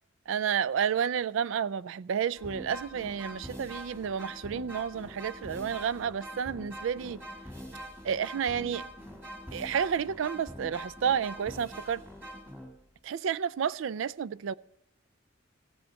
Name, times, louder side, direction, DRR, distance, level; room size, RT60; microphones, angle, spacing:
voice 1, 0.3-7.2 8.0-8.9 9.5-12.0 13.0-14.5, right 7 dB, 70° right, 0.3 m, -31 dB
Nightmarish Circus March, 2.4-13.0, equal, 10° right, 1.9 m, -44 dB
16.0 x 7.0 x 6.3 m
head